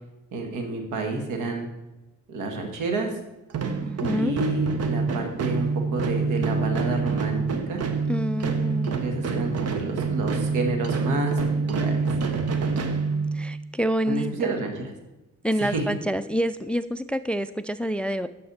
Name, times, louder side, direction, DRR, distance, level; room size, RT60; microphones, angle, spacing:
voice 1, 0.3-1.7 2.3-3.1 4.1-7.4 7.7-7.8 9.0-11.4 11.7-12.1 14.1-14.9 15.6-15.8, right 2 dB, 85° right, 4 dB, 1.8 m, -29 dB
sound 1, 3.5-13.7, right 4 dB, 55° right, 1.1 m, -26 dB
voice 2, 3.8-4.4 8.1-9.0 13.3-14.6 15.4-18.3, equal, 5° left, 14 dB, 0.3 m, -27 dB
11.0 x 6.7 x 4.2 m, 1.0 s
cardioid pair, 90°, 30 cm